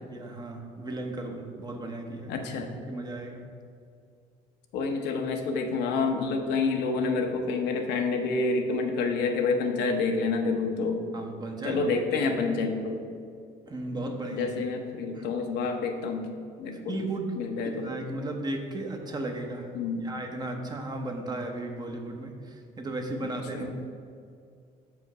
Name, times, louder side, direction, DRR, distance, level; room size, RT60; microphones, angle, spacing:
voice 1, 0.1-2.5 2.9-3.5 11.1-12.3 13.7-14.5 15.1-15.3 16.7-19.8 20.0-23.7, right 2 dB, 25° right, 3 dB, 0.8 m, -35 dB
voice 2, 2.3-2.7 4.7-11.0 11.6-13.0 14.3-16.3 16.6-16.9 17.4-17.9 19.7-20.0 23.5-23.7, left 4 dB, 80° left, 3 dB, 0.8 m, -28 dB
6.3 x 5.1 x 4.7 m, 2.4 s
cardioid pair, 110°, 17 cm